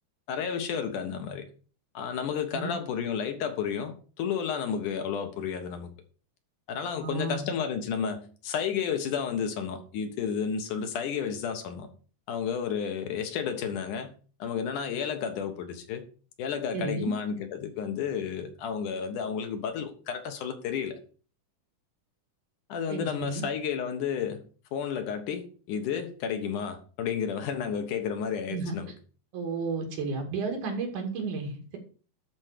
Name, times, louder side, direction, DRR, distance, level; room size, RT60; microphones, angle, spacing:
voice 1, 0.3-1.5 1.9-5.9 6.7-11.9 12.3-14.1 14.4-16.0 16.4-21.0 22.7-24.4 24.7-28.9, left 7 dB, 85° left, 3.0 m, -32 dB
voice 2, 7.0-7.4 16.7-17.1 22.9-23.4 28.5-28.8 29.3-31.8, right 4 dB, 80° right, 3.8 m, -32 dB
11.5 x 4.5 x 6.6 m
omnidirectional pair, 3.5 m